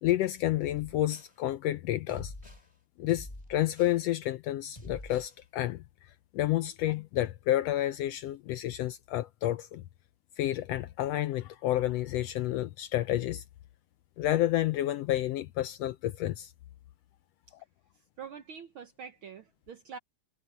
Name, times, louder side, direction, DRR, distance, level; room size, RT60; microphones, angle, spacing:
voice 1, 0.0-2.3 3.0-9.8 10.4-13.4 14.2-16.5, left 13 dB, 75° left, 1.5 m, -30 dB
sound 1, 0.7-1.3 2.1-2.7 3.1-4.0 4.7-5.3, left 1 dB, 10° left, 3.4 m, -47 dB
voice 2, 17.9-20.0, right 7 dB, 65° right, 1.3 m, -45 dB
omnidirectional pair, 3.3 m